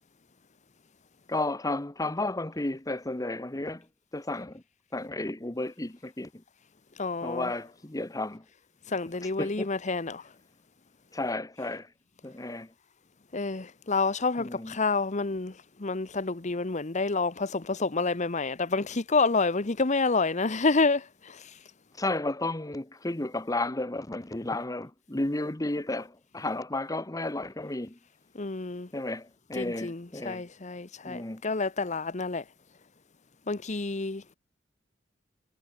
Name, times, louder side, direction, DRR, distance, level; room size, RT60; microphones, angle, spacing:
voice 1, 1.3-3.9 4.1-4.6 4.9-6.4 7.2-8.4 9.1-9.8 11.1-11.9 12.2-12.7 14.4-14.8 22.0-28.0 28.9-30.4 31.0-31.4, left 2 dB, 20° left, 1.1 m, -33 dB
voice 2, 7.0-7.5 8.9-10.2 13.3-15.5 15.8-21.5 28.3-28.9 29.6-32.4 33.5-34.3, left 3 dB, 40° left, 1.0 m, -28 dB
head